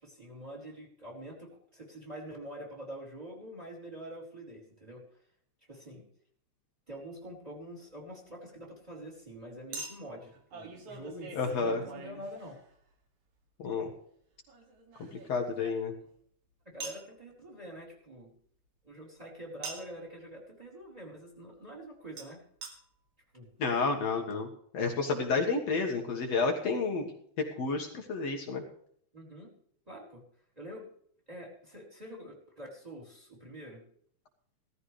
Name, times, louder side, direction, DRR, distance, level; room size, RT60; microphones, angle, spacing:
voice 1, 0.0-5.0 5.7-6.0 6.9-12.6 16.6-18.3 18.8-22.4 23.3-23.5 29.1-29.5 29.9-30.2 30.6-30.9 31.3-33.8, equal, 10° right, -1 dB, 4.3 m, -46 dB
Chink clink, 6.9-7.1 9.7-12.9 14.5-16.2 16.8-17.1 19.6-20.0 22.2-22.3 22.6-22.7 23.4-23.5 23.7-23.8, right 4 dB, 80° right, 3.7 m, -45 dB
voice 2, 11.3-11.8 13.6-13.9 15.0-15.9 23.6-24.5 24.7-27.0 27.6-28.6, left 4 dB, 60° left, 2 dB, 2.7 m, -30 dB
17.5 x 14.0 x 3.3 m, 0.65 s
omnidirectional pair, 3.3 m